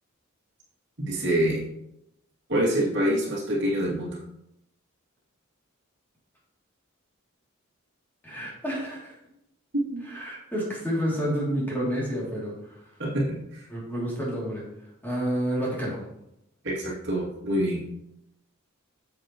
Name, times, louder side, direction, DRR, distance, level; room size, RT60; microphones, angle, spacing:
voice 1, 1.0-1.6 2.5-4.2 9.7-10.0 13.0-13.7 16.6-17.8, right 1 dB, 55° right, -4 dB, 2.6 m, -26 dB
voice 2, 8.2-9.2 10.0-12.8 13.7-14.6 15.0-16.0, equal, 10° left, -6 dB, 2.8 m, -29 dB
9.6 x 7.3 x 3.0 m, 0.83 s
head